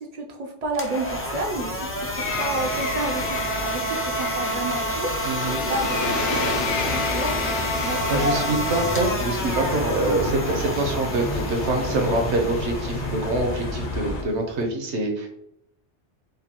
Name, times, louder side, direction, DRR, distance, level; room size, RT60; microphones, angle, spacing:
voice 1, 0.0-8.7, right 1 dB, 50° right, 2 dB, 0.5 m, -31 dB
sound 1, 0.6-14.7, equal, 20° left, 0.4 m, -30 dB
sound 2, 1.0-14.2, left 1 dB, 50° left, 0.8 m, -33 dB
sound 3, 2.1-13.5, left 3 dB, 80° left, 0.9 m, -32 dB
voice 2, 5.2-5.6 8.1-15.3, right 2 dB, 75° right, 2 dB, 1.1 m, -25 dB
5.1 x 2.3 x 2.9 m, 0.78 s
omnidirectional pair, 1.2 m